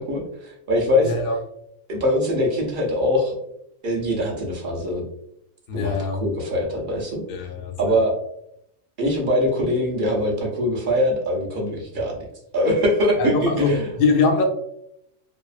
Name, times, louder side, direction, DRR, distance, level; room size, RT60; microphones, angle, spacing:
voice 1, 0.0-1.1 1.9-3.3 3.8-5.0 5.7-5.9 6.2-7.2 7.8-8.1 9.0-12.2 12.5-13.9, left 1 dB, 55° right, 0 dB, 0.6 m, -22 dB
voice 2, 1.0-1.4 5.7-6.2 7.3-7.9 13.2-14.5, left 4 dB, 65° left, 3 dB, 0.6 m, -22 dB
2.7 x 2.4 x 2.3 m, 0.76 s
omnidirectional pair, 1.4 m